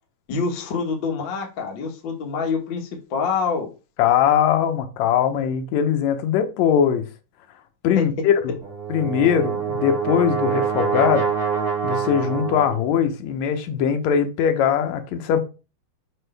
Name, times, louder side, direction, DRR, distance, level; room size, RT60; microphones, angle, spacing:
voice 1, 0.3-3.7 8.0-8.1, left 5 dB, 50° left, 1.5 m, -26 dB
voice 2, 4.0-7.1 7.8-8.6 8.9-11.3 11.8-15.4, left 8 dB, 70° left, 1.9 m, -21 dB
Brass instrument, 8.6-12.9, right 6 dB, 45° right, 3.5 m, -25 dB
6.3 x 4.8 x 3.4 m
omnidirectional pair, 3.7 m